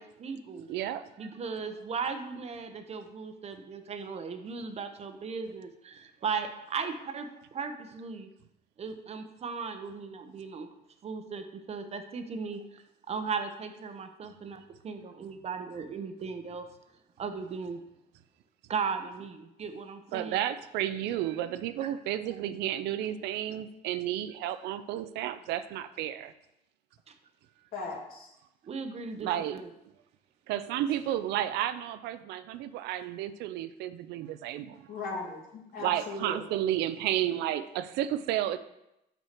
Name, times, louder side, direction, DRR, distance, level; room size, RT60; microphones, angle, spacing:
voice 1, 0.0-0.7 1.2-8.3 8.8-10.7 11.0-16.7 17.2-17.8 18.7-20.4 28.7-29.6, right 5 dB, 40° right, 8 dB, 0.7 m, -37 dB
voice 2, 0.7-1.3 20.1-26.3 29.2-29.6 30.5-34.9 35.8-38.6, right 12 dB, 85° right, 12 dB, 0.4 m, -32 dB
voice 3, 27.7-28.3 34.9-36.4, left 3 dB, 60° left, -2 dB, 2.2 m, -38 dB
5.8 x 5.4 x 4.4 m, 0.85 s
cardioid pair, 110°, 17 cm